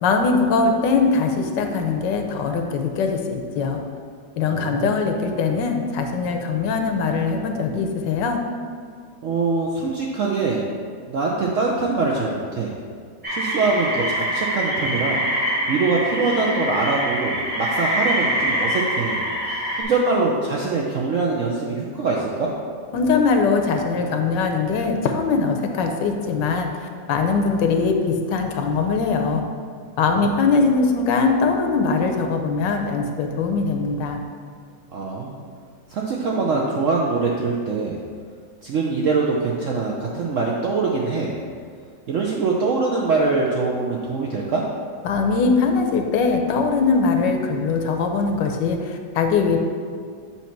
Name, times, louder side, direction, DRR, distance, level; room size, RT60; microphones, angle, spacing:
voice 1, 0.0-3.8 4.4-8.4 22.9-26.7 27.1-29.4 30.0-34.2 45.0-49.6, left 4 dB, 80° left, 4 dB, 1.3 m, -21 dB
voice 2, 4.4-4.9 9.2-10.6 11.1-12.7 13.3-19.2 19.8-22.5 30.1-30.4 34.9-35.4 35.9-38.0 38.6-41.3 42.1-44.7, right 3 dB, 70° right, -2 dB, 0.7 m, -23 dB
sound 1, 13.2-19.8, equal, 5° right, 1.2 m, -24 dB
7.2 x 2.9 x 5.7 m, 2.1 s
omnidirectional pair, 2.0 m